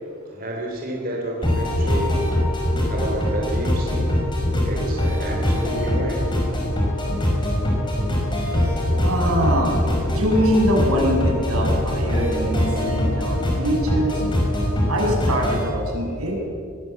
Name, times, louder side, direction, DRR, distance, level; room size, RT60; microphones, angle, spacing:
voice 1, 0.3-2.2 2.9-4.1 4.6-6.3, right 1 dB, 40° right, -1 dB, 3.1 m, -30 dB
sound 1, 1.4-15.6, left 1 dB, 20° left, 5.4 m, -22 dB
voice 2, 9.0-14.2 14.9-16.5, equal, 85° right, -1 dB, 6.9 m, -23 dB
22.0 x 18.5 x 8.4 m, 2.5 s
head